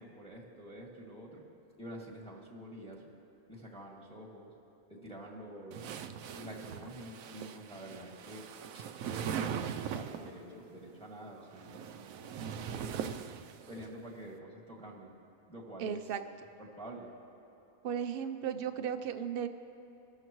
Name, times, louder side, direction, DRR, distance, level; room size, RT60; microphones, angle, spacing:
voice 1, 0.0-1.4 1.8-3.1 3.5-4.5 4.9-5.9 6.3-8.5 8.7-9.6 9.9-13.0 13.7-15.1 15.5-16.0 16.6-17.1, equal, 5° left, -3 dB, 2.0 m, -48 dB
sound 1, 5.7-10.4 11.4-13.9, right 8 dB, 70° right, 1.0 m, -40 dB
voice 2, 15.8-16.2 17.8-19.5, right 8 dB, 50° right, 9 dB, 0.7 m, -35 dB
25.0 x 13.5 x 3.1 m, 2.9 s
omnidirectional pair, 1.5 m